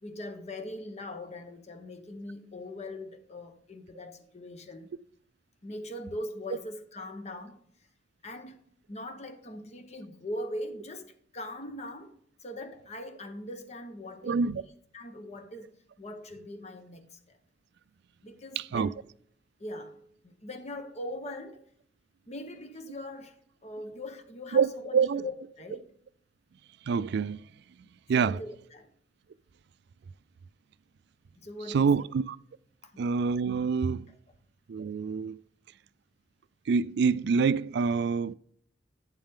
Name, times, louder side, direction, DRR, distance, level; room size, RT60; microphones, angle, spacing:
voice 1, 0.0-4.9 5.6-7.6 8.2-12.1 12.4-14.6 14.9-17.4 18.2-19.0 19.6-21.6 22.3-23.4 23.6-25.9 27.8-28.9 31.4-32.1 32.9-33.1 34.1-34.2, left 1 dB, 40° left, 1.0 m, -41 dB
voice 2, 14.2-14.6 18.6-18.9 24.5-25.2 26.9-27.4 28.1-28.4 31.7-32.4 33.0-34.1 34.7-35.4 36.7-38.3, right 5 dB, 65° right, 0.3 m, -26 dB
9.0 x 7.2 x 3.7 m
head